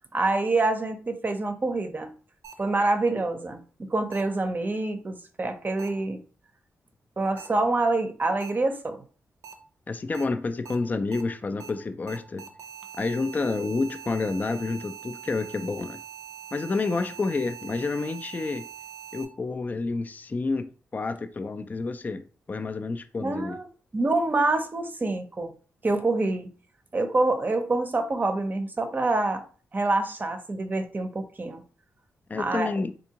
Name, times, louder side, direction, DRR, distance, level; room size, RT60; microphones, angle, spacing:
voice 1, 0.1-2.1 2.6-6.2 7.2-9.0 23.2-23.7 23.9-25.5 25.8-26.5 26.9-29.4 29.7-31.6 32.4-32.7, right 2 dB, 35° right, 0.6 m, -26 dB
sound 1, 2.4-2.5 4.1-4.2 5.8-5.9 7.4-7.5 8.4-8.5 9.4-9.5 10.1-10.2 10.6-10.7 11.1-11.2 11.6-11.7 12.1-19.2, right 8 dB, 75° right, 0.6 m, -43 dB
voice 2, 9.9-12.5 13.0-16.0 16.5-18.7 19.1-22.2 22.5-23.6 32.3-32.9, left 3 dB, 30° left, 0.3 m, -29 dB
3.6 x 2.6 x 2.8 m
cardioid pair, 65°, 6 cm